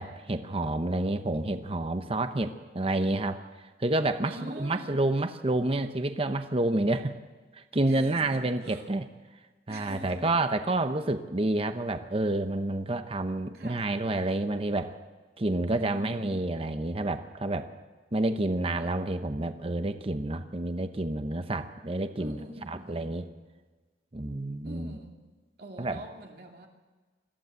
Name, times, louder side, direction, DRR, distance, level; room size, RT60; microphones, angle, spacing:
voice 1, 0.0-3.4 3.8-7.2 7.5-9.1 9.7-15.0 15.4-17.7 18.1-22.4 22.7-23.2 24.1-25.0 25.8-26.0, right 2 dB, 35° right, 9 dB, 0.8 m, -29 dB
voice 2, 4.2-5.0 7.8-8.9 9.7-10.5 13.5-14.0 15.7-16.2 22.2-23.4 24.6-25.2 25.6-26.7, right 1 dB, 60° right, 1 dB, 2.5 m, -44 dB
21.5 x 15.0 x 8.2 m, 1.3 s
head